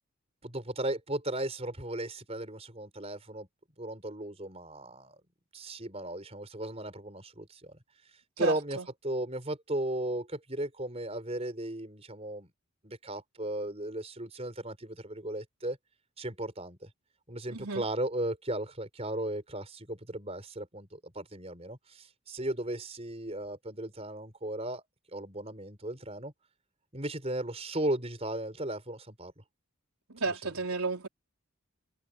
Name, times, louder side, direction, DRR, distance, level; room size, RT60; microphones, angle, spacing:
voice 1, 0.4-3.5 3.8-5.2 5.5-7.8 8.4-8.8 9.0-12.5 12.8-15.8 16.2-16.9 17.3-24.8 25.1-26.3 26.9-29.3 30.3-30.4, right 1 dB, 30° right, 5.0 m, -36 dB
voice 2, 8.4-8.9 17.5-17.8 30.1-31.1, right 3 dB, 85° right, 4.0 m, -32 dB
head